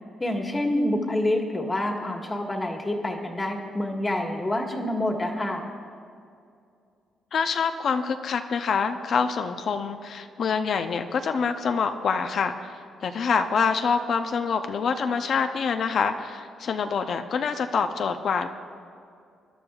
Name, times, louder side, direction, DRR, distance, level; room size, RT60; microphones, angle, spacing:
voice 1, 0.2-5.6, left 1 dB, 20° left, 1 dB, 1.6 m, -27 dB
voice 2, 7.3-12.7 13.0-18.5, left 5 dB, 60° left, 7 dB, 0.6 m, -26 dB
21.0 x 11.5 x 2.4 m, 2.4 s
cardioid pair, 90°, 0 cm